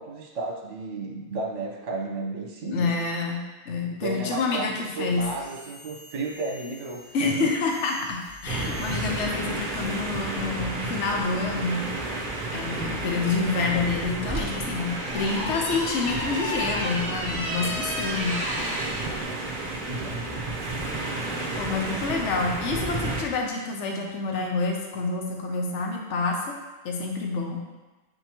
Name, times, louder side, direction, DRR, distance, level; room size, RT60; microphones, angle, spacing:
voice 1, 0.0-2.9 4.0-7.5 16.2-16.7 19.9-20.1, right 3 dB, 65° right, 0 dB, 1.4 m, -33 dB
voice 2, 2.7-5.3 7.1-11.9 12.5-18.4 21.6-26.6 26.8-27.6, left 4 dB, 65° left, 1 dB, 1.0 m, -28 dB
sound 1, 5.1-10.0, left 2 dB, 35° left, 2.6 m, -48 dB
sound 2, 8.5-23.2, right 2 dB, 40° right, 1.0 m, -32 dB
sound 3, 14.2-19.1, equal, 15° right, 1.7 m, -32 dB
7.8 x 5.3 x 3.0 m, 1.2 s
omnidirectional pair, 1.3 m